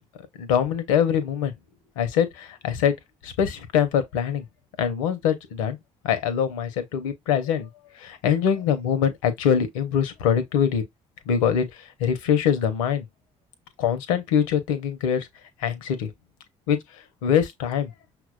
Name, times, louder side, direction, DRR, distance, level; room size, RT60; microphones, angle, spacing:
voice 1, 0.4-1.5 2.0-2.9 3.2-4.4 4.8-5.8 6.0-7.7 8.0-10.8 11.3-13.0 13.8-15.3 15.6-16.1 16.7-16.8 17.2-17.9, left 8 dB, 85° left, 0.6 m, -23 dB
5.8 x 2.2 x 2.3 m
hypercardioid pair, 55°, 17 cm